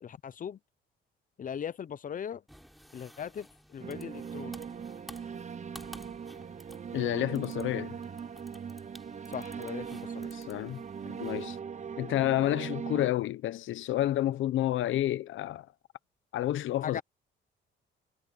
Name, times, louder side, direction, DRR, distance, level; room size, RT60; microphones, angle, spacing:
voice 1, 0.0-0.6 1.4-2.4 2.9-4.6 9.3-10.3 16.8-17.0, left 8 dB, 45° left, 0.7 m, -39 dB
sound 1, 2.5-11.6, equal, ahead, 3.8 m, -54 dB
sound 2, 3.8-13.1, right 7 dB, 35° right, 0.9 m, -40 dB
voice 2, 6.9-8.0 10.3-11.6 12.0-15.7 16.3-17.0, left 13 dB, 80° left, 0.9 m, -30 dB
cardioid pair, 90°, 20 cm